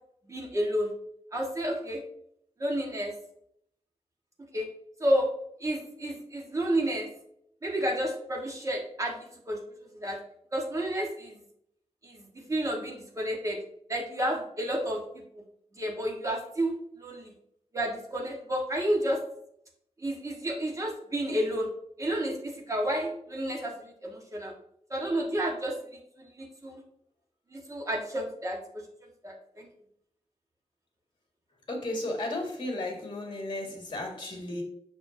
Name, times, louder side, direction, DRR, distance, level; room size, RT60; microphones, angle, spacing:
voice 1, 0.2-0.9 1.3-2.0 2.6-3.1 4.5-4.7 5.0-5.3 5.6-7.1 7.6-9.6 10.0-10.2 10.5-11.4 12.0-13.6 13.9-15.4 15.7-17.3 17.7-19.2 20.0-21.7 22.0-24.5 24.9-25.8 26.2-26.8 27.5-28.9 29.2-29.7, right 1 dB, 25° right, 0 dB, 1.4 m, -31 dB
voice 2, 31.7-34.6, left 1 dB, 45° left, 1 dB, 1.9 m, -34 dB
7.0 x 5.9 x 2.7 m, 0.71 s
wide cardioid pair, 145°, 12 cm